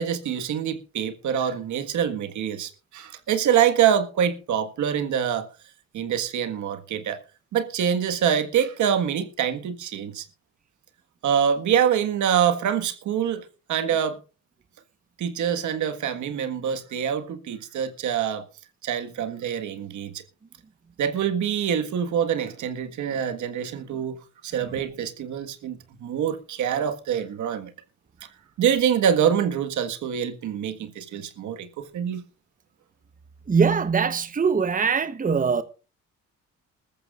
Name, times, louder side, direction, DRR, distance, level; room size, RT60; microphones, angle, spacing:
voice 1, 0.0-5.5 5.9-7.2 7.5-10.2 11.2-14.2 15.2-18.5 18.8-20.2 21.0-24.2 24.4-27.7 28.6-32.2, right 8 dB, 75° right, 1.7 m, -25 dB
voice 2, 33.5-35.6, right 5 dB, 25° right, 1.0 m, -22 dB
20.0 x 14.0 x 2.5 m
cardioid pair, 90°, 30 cm